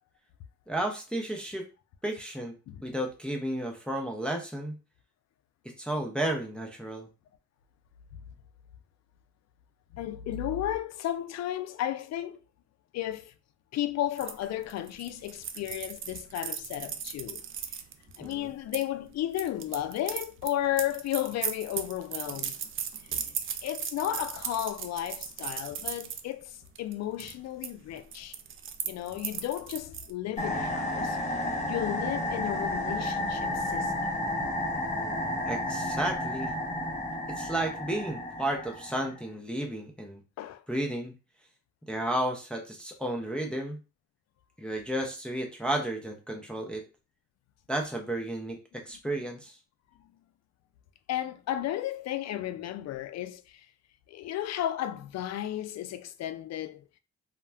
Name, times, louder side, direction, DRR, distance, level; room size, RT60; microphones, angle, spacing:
voice 1, 0.7-1.7 2.0-2.5 2.8-4.8 5.8-7.1 18.2-18.5 34.9-36.5 37.4-40.2 40.7-41.1 41.9-43.8 44.6-46.8 47.7-49.6, right 1 dB, 5° left, 0.6 m, -33 dB
voice 2, 9.9-12.4 12.9-13.3 13.7-17.4 18.2-22.6 23.0-23.2 23.6-28.4 28.8-31.2 31.7-34.1 40.4-40.6 51.1-53.7 54.1-56.8, left 12 dB, 60° left, 0.4 m, -33 dB
sound 1, 14.2-18.8 19.3-26.2 26.7-26.9 27.2-27.7 28.0-30.1, right 8 dB, 45° right, 0.4 m, -37 dB
sound 2, 30.4-39.2, left 1 dB, 25° left, 0.9 m, -32 dB
2.3 x 2.1 x 3.3 m
cardioid pair, 90°, 30 cm